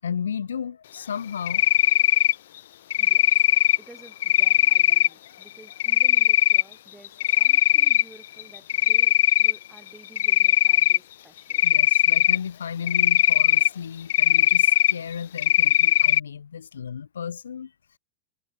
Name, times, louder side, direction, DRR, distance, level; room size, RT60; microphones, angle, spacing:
voice 1, 0.0-1.6 11.6-17.7, left 7 dB, 85° left, 1.8 m, -34 dB
Cricket, 1.5-2.3 2.9-3.8 4.2-5.1 5.8-6.6 7.0-8.0 8.4-9.6 10.2-11.0 11.5-12.4 12.9-13.7 14.1-14.9 15.4-16.2, left 12 dB, 70° left, 0.6 m, -19 dB
voice 2, 3.0-11.6, right 3 dB, 10° right, 7.2 m, -52 dB
hypercardioid pair, 110°, 0 cm